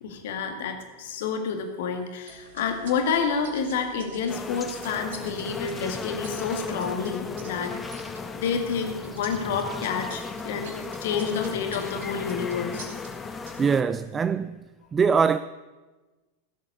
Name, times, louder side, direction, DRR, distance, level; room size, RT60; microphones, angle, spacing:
voice 1, 0.0-7.7 8.3-10.7 11.0-12.9, left 6 dB, 55° left, 1.9 m, -29 dB
sound 1, 2.3-13.7, right 3 dB, 60° right, 2.5 m, -47 dB
sound 2, 4.3-13.8, left 4 dB, 15° left, 0.9 m, -36 dB
voice 2, 13.6-14.6 14.9-15.4, right 6 dB, 20° right, 0.3 m, -22 dB
15.5 x 8.1 x 6.9 m
figure-of-eight pair, 90°, 0 cm